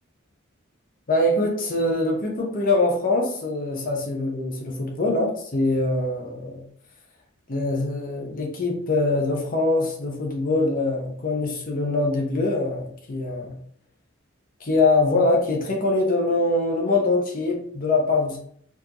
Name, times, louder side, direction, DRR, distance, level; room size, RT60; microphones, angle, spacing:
voice 1, 1.1-6.6 7.5-13.6 14.6-18.4, left 2 dB, 40° left, 1 dB, 0.7 m, -23 dB
4.5 x 2.5 x 2.9 m, 0.62 s
head